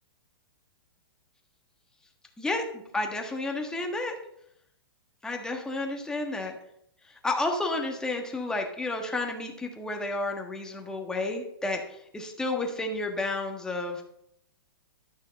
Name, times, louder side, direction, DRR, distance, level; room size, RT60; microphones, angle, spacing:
voice 1, 2.9-4.1 5.2-6.6 7.2-11.8 12.1-14.0, left 2 dB, 5° left, 2 dB, 1.4 m, -31 dB
12.0 x 6.3 x 5.2 m, 0.72 s
hypercardioid pair, 150°, 12 cm